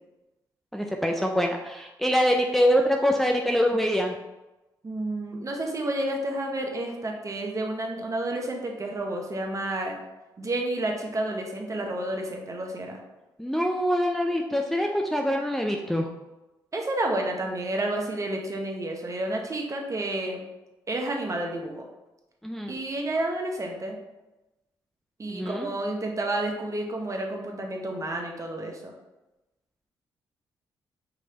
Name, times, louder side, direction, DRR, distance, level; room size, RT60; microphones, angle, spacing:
voice 1, 0.7-4.1 13.4-16.1 22.4-22.8 25.3-25.7, equal, 5° left, 1 dB, 0.5 m, -24 dB
voice 2, 4.8-10.0 10.4-13.0 16.7-20.4 20.9-21.8 22.7-24.0 25.2-28.9, right 1 dB, 35° right, 1 dB, 1.0 m, -30 dB
5.2 x 3.1 x 2.9 m, 1.0 s
supercardioid pair, 55°, 9 cm